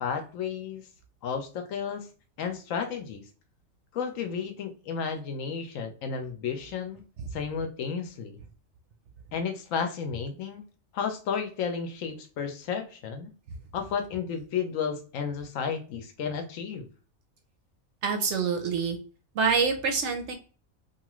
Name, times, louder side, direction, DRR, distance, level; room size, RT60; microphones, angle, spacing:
voice 1, 0.0-0.8 1.2-2.1 2.4-3.2 3.9-7.0 7.3-8.4 9.3-10.6 10.9-13.3 13.7-16.9, left 6 dB, 70° left, 5 dB, 0.9 m, -32 dB
voice 2, 18.0-19.0 19.3-20.3, right 5 dB, 65° right, 5 dB, 0.8 m, -26 dB
2.8 x 2.4 x 2.9 m, 0.37 s
omnidirectional pair, 1.5 m